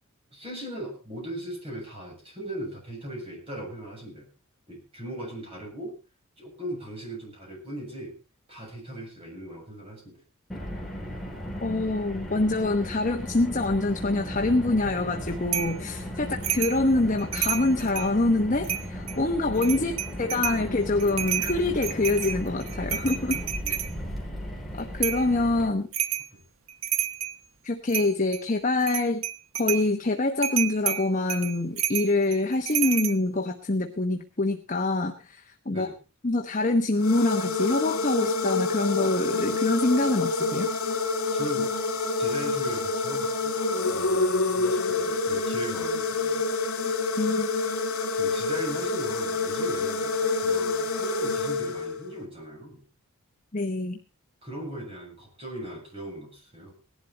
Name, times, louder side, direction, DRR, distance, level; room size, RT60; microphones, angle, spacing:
voice 1, 0.3-4.3 4.7-6.0 6.4-8.2 8.5-10.2 16.2-16.4 19.8-19.9 23.6-23.8 26.3-26.4 35.7-35.9 41.3-41.7 42.2-43.6 43.9-46.4 48.2-52.8 54.4-56.7, right 1 dB, 25° right, -1 dB, 7.7 m, -39 dB
Car, 10.5-25.7, equal, ahead, 3.5 m, -36 dB
voice 2, 11.6-19.9 20.2-23.4 24.7-25.9 27.6-29.2 29.5-35.9 36.2-40.7 47.2-47.5 53.5-54.0, left 2 dB, 35° left, 4 dB, 1.0 m, -25 dB
sound 1, 15.5-15.8 16.4-16.8 17.2-18.1 18.6-19.2 19.6-20.6 21.0-23.9 25.0-25.3 25.9-26.3 26.7-27.4 27.9-28.4 28.8-29.9 30.4-33.2, right 10 dB, 70° right, 1.0 m, -30 dB
sound 2, 37.0-52.2, left 3 dB, 80° left, 2.6 m, -27 dB
18.0 x 11.5 x 4.2 m, 0.32 s
head